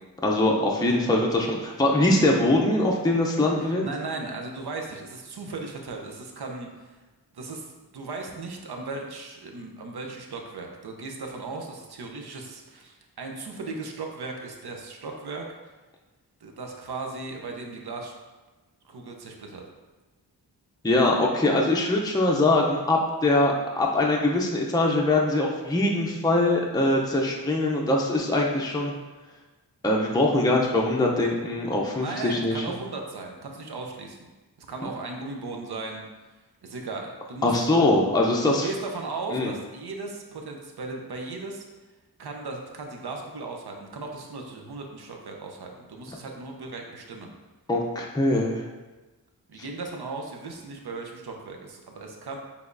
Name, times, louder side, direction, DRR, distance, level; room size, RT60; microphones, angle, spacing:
voice 1, 0.2-3.8 20.8-28.9 29.8-32.6 37.4-38.7 39.3-39.5 47.7-48.7, left 2 dB, 10° left, -1 dB, 0.5 m, -22 dB
voice 2, 3.6-7.0 7.3-15.4 16.4-18.1 18.8-19.6 32.0-34.2 34.6-36.0 36.6-37.5 38.4-41.6 42.2-47.3 49.5-52.4, right 3 dB, 70° right, 2 dB, 0.7 m, -37 dB
4.9 x 3.4 x 2.6 m, 1.2 s
cardioid pair, 45°, 40 cm